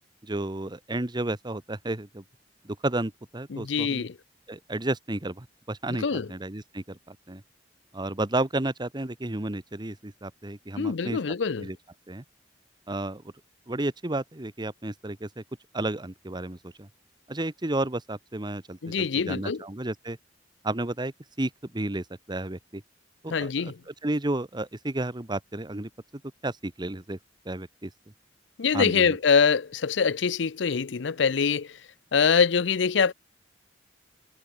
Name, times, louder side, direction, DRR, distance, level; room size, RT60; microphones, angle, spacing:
voice 1, 0.2-2.2 2.6-4.1 4.5-7.4 7.9-11.2 11.6-11.8 12.1-12.2 12.9-13.2 13.7-15.4 15.7-16.9 17.3-20.2 20.6-22.8 23.2-25.9 26.4-27.2 27.4-27.9 28.7-29.2, right 2 dB, 25° right, 1.2 m, -32 dB
voice 2, 3.5-4.1 5.9-6.3 10.8-11.7 18.8-19.6 23.3-23.8 28.6-31.8 32.1-33.1, left 6 dB, 70° left, 0.6 m, -24 dB
head